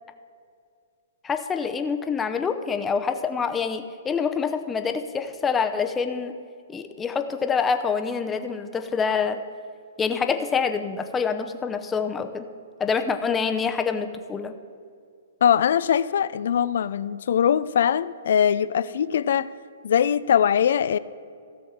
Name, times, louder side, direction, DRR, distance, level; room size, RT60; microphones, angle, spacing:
voice 1, 1.2-6.4 6.7-9.4 10.0-12.5 12.8-14.5, left 5 dB, 15° left, 7 dB, 0.7 m, -26 dB
voice 2, 15.4-19.5 19.8-21.0, left 8 dB, 70° left, 17 dB, 0.4 m, -21 dB
16.5 x 6.4 x 4.3 m, 2.3 s
hypercardioid pair, 140°, 0 cm